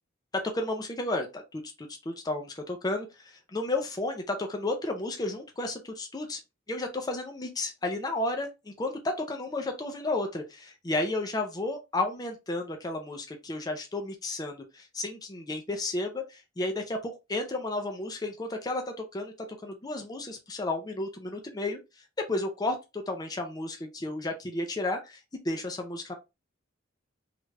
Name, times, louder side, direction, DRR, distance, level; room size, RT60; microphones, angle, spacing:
voice 1, 0.5-6.4 6.7-19.3 19.6-21.8 22.3-26.1, left 2 dB, 20° left, 0.5 m, -32 dB
3.2 x 2.4 x 3.1 m
head